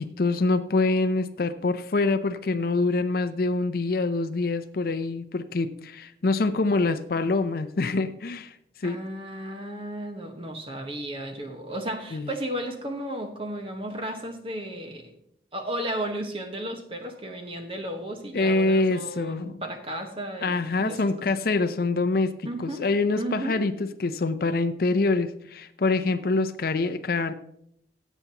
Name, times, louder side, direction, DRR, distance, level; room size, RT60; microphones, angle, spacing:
voice 1, 0.0-9.0 12.1-12.3 18.3-19.5 20.4-23.7 24.0-27.3, left 3 dB, 50° left, 11 dB, 0.5 m, -25 dB
voice 2, 8.8-15.1 15.5-21.3 22.4-22.8 23.2-23.6, right 1 dB, 30° right, 5 dB, 1.3 m, -34 dB
16.5 x 8.1 x 2.9 m, 0.73 s
head